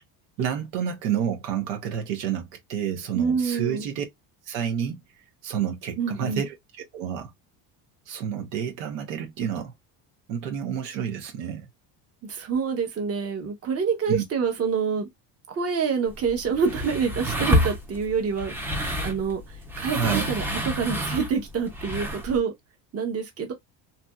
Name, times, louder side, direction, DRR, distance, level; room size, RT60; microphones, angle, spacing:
voice 1, 0.4-4.0 4.5-5.0 5.4-6.5 6.9-7.3 8.1-9.7 10.3-11.7 14.1-14.2 19.9-20.3, right 8 dB, 80° right, 1.1 m, -29 dB
voice 2, 3.1-3.8 6.0-6.4 12.2-15.1 15.5-18.5 19.0-20.4 20.8-22.5 22.9-23.5, right 6 dB, 30° right, 1.0 m, -27 dB
sound 1, 16.1-22.4, equal, 5° right, 0.5 m, -29 dB
2.9 x 2.5 x 2.3 m
cardioid pair, 115°, 48 cm